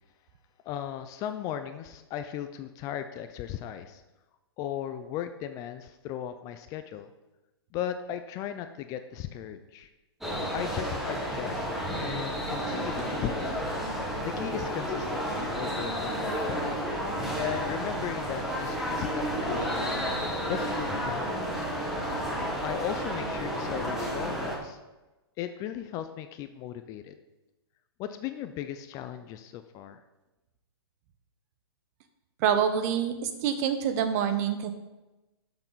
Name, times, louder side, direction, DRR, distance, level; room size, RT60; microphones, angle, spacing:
voice 1, 0.7-4.0 4.6-7.1 7.7-9.9 10.5-11.7 12.0-13.6 14.2-16.6 17.1-20.1 20.5-21.8 22.6-24.8 25.4-27.1 28.0-30.0, left 10 dB, 25° left, 9 dB, 0.5 m, -37 dB
sound 1, 10.2-24.6, equal, ahead, 1.6 m, -31 dB
voice 2, 32.4-34.7, right 8 dB, 40° right, 8 dB, 1.1 m, -26 dB
12.0 x 6.8 x 4.0 m, 1.1 s
hypercardioid pair, 145°, 14 cm